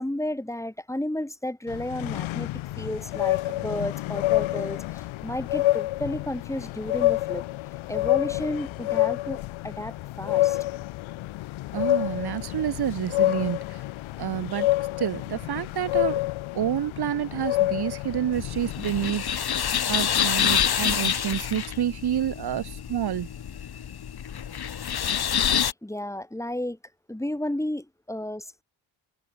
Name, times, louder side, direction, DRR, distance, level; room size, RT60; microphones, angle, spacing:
voice 1, 0.0-7.4 7.9-9.4 9.6-10.6 25.5-26.8 27.1-28.6, left 1 dB, 5° left, 4.7 m, -32 dB
sound 1, 1.7-19.1, left 17 dB, 85° left, 2.0 m, -28 dB
voice 2, 11.7-13.8 14.2-14.7 15.0-16.2 16.5-23.3, right 10 dB, 55° right, 2.1 m, -29 dB
sound 2, 18.3-25.7, left 8 dB, 55° left, 6.0 m, -27 dB
cardioid pair, 90°, 46 cm